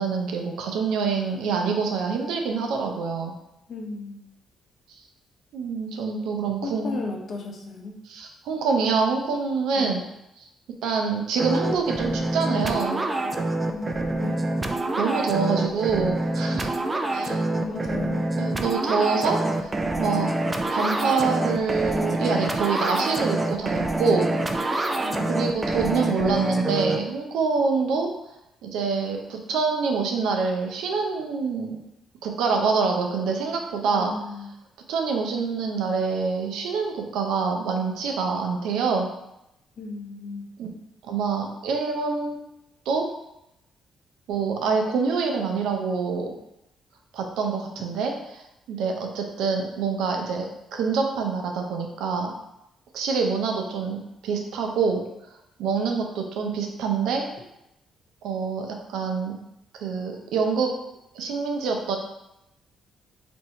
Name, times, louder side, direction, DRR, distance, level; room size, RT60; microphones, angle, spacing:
voice 1, 0.0-3.3 5.5-7.0 8.1-10.0 10.8-13.0 15.0-16.7 17.1-17.3 18.4-19.7 20.0-20.3 20.7-24.6 25.3-28.1 28.6-31.7 32.2-34.1 34.9-39.1 40.6-40.7 41.0-42.4 42.9-43.0 44.3-46.3 47.1-52.3 52.9-54.0 54.2-55.0 55.6-57.2 58.2-59.3 59.7-60.7 61.1-62.0, right 5 dB, 85° right, 3 dB, 0.5 m, -26 dB
voice 2, 3.7-4.3 6.6-8.0 9.7-10.0 13.6-14.5 17.2-18.3 25.0-25.6 33.9-34.5 39.8-40.5, left 3 dB, 55° left, 1 dB, 0.7 m, -35 dB
sound 1, 11.4-27.0, right 2 dB, 25° right, 0.4 m, -26 dB
2.7 x 2.6 x 4.3 m, 0.86 s
cardioid pair, 90°, 0 cm